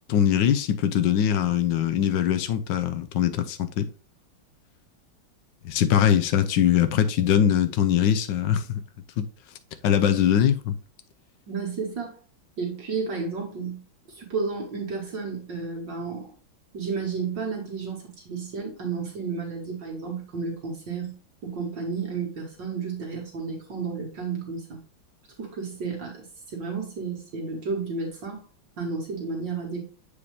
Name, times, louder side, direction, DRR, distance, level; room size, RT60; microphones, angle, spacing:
voice 1, 0.1-3.9 5.6-8.8 9.2-9.3 9.8-10.7, left 9 dB, 70° left, 1.4 m, -22 dB
voice 2, 11.5-12.2 12.6-13.8 14.1-16.3 16.7-21.1 21.4-24.8 25.4-28.4 28.8-29.8, right 5 dB, 65° right, 2.2 m, -32 dB
7.4 x 5.0 x 3.2 m
omnidirectional pair, 2.1 m